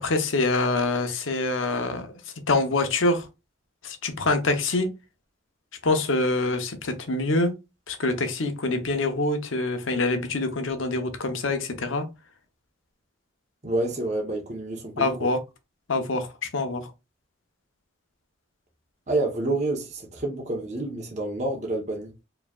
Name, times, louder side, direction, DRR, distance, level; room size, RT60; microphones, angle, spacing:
voice 1, 0.0-2.2 2.5-3.3 3.8-4.9 5.8-7.5 7.9-12.1 15.0-15.4 15.9-16.9, left 2 dB, 80° left, 0.9 m, -25 dB
voice 2, 13.6-15.3 19.1-22.1, right 2 dB, 35° right, 0.9 m, -28 dB
4.8 x 3.2 x 2.3 m
head